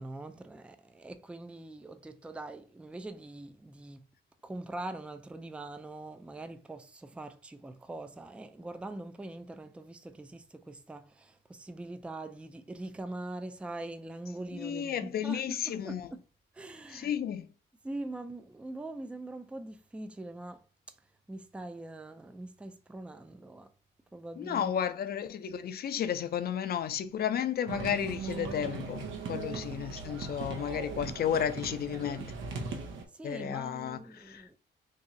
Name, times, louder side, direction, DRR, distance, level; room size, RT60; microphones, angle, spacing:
voice 1, 0.0-4.0 4.4-16.2 16.5-17.1 17.8-20.6 21.3-23.7 24.1-24.7 32.7-34.6, right 2 dB, 5° right, 0.4 m, -43 dB
voice 2, 14.5-16.1 16.9-17.5 24.4-32.3 33.2-34.5, left 9 dB, 50° left, 0.5 m, -33 dB
sound 1, 27.7-33.0, right 4 dB, 80° right, 0.8 m, -39 dB
3.0 x 2.7 x 3.7 m
cardioid pair, 90°, 20 cm